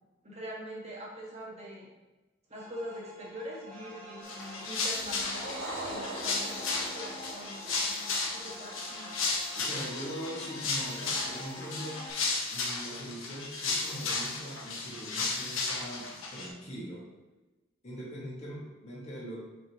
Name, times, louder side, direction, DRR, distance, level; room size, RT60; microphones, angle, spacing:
voice 1, 0.2-1.9 2.5-9.1, equal, 35° right, -4 dB, 1.6 m, -43 dB
sound 1, 2.5-12.1, equal, 10° left, 2.0 m, -47 dB
sound 2, 4.2-16.5, left 3 dB, 80° left, 1.1 m, -34 dB
sound 3, 5.0-9.6, right 1 dB, 90° right, 1.3 m, -43 dB
voice 2, 9.6-12.1 12.5-17.1 17.8-19.4, equal, 35° left, -6 dB, 1.9 m, -41 dB
6.3 x 5.2 x 3.1 m, 1.1 s
head